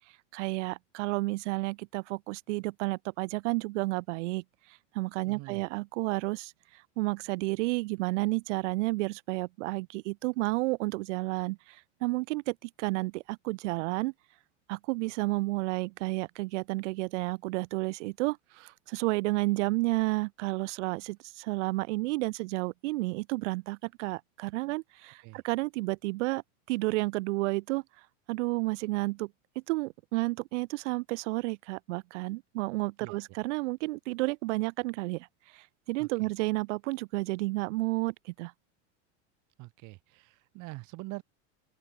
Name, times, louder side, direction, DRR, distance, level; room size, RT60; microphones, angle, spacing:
voice 1, 0.3-4.4 4.9-6.5 7.0-14.1 14.7-26.4 26.7-27.8 28.3-29.3 29.7-35.3 35.5-38.5, right 22 dB, 70° right, 2.0 m, -31 dB
voice 2, 5.3-5.6 25.2-25.4 33.0-33.2 36.0-36.3 39.6-41.2, right 23 dB, 55° right, 5.8 m, -44 dB
open air
supercardioid pair, 125°, 37 cm